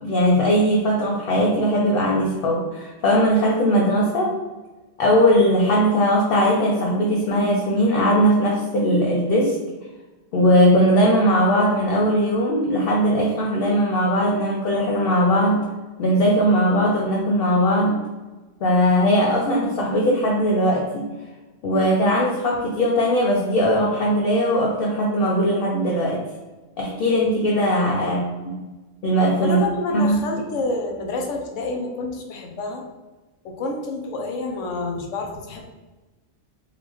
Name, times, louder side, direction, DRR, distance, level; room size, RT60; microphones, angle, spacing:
voice 1, 0.0-4.3 5.0-9.6 10.3-15.7 16.0-18.0 18.6-21.1 21.6-26.2 26.8-28.6 29.0-29.6 29.9-30.2, equal, 60° left, -2 dB, 0.6 m, -19 dB
voice 2, 29.4-32.8 33.4-35.6, left 3 dB, 85° left, 3 dB, 1.0 m, -28 dB
3.7 x 2.4 x 3.0 m, 1.2 s
omnidirectional pair, 1.3 m